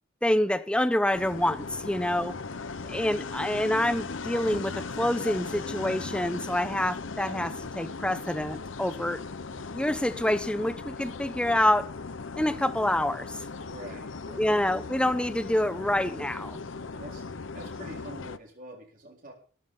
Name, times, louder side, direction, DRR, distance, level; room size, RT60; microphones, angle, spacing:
voice 1, 0.2-2.3 2.9-9.2 9.7-11.9 12.4-13.4 14.4-16.6, left 1 dB, 5° left, 0.7 m, -27 dB
sound 1, 1.1-18.4, left 4 dB, 70° left, 0.8 m, -38 dB
voice 2, 1.8-2.6 8.8-9.2 13.4-14.5 16.9-19.3, right 1 dB, 40° right, 3.8 m, -47 dB
13.0 x 11.0 x 5.4 m
head